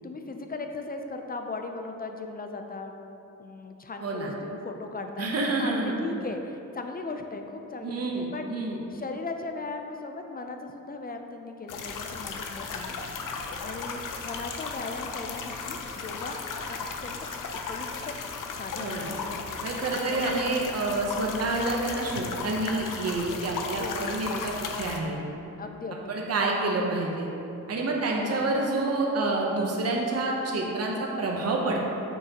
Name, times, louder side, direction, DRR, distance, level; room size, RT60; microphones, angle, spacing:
voice 1, 0.0-3.0 3.4-8.5 8.9-12.9 13.4-17.2 17.7-18.2 18.5-19.4 19.9-20.3 21.0-21.2 23.8-24.2 25.6-26.2 28.2-28.5, left 3 dB, 30° left, 5 dB, 0.4 m, -38 dB
voice 2, 4.0-4.3 5.2-5.9 7.8-8.8 18.8-19.1 19.6-25.2 26.1-27.3 27.7-31.9, right 2 dB, 50° right, -1 dB, 0.8 m, -28 dB
sound 1, 11.7-25.0, left 5 dB, 85° left, 0.5 m, -35 dB
6.5 x 5.0 x 2.9 m, 2.9 s
wide cardioid pair, 115°, 31 cm